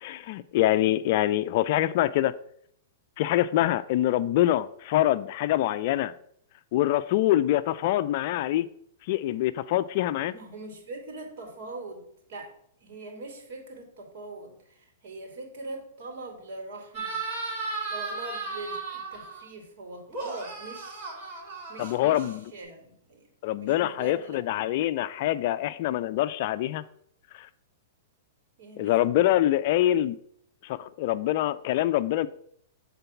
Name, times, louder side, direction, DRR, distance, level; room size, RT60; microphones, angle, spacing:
voice 1, 0.0-2.3 3.2-6.1 6.7-8.7 9.1-10.3 21.8-22.4 23.4-26.8 27.4-27.5 28.8-30.2 30.6-32.3, left 14 dB, 50° left, 0.4 m, -25 dB
voice 2, 10.3-12.0 12.3-12.5 12.8-17.2 17.9-21.1 21.7-23.2 23.6-24.4 28.6-29.0, right 2 dB, 55° right, 2.8 m, -42 dB
sound 1, 16.9-19.4 20.1-22.6, right 3 dB, 25° right, 3.4 m, -35 dB
8.0 x 3.9 x 5.7 m
hypercardioid pair, 135°, 0 cm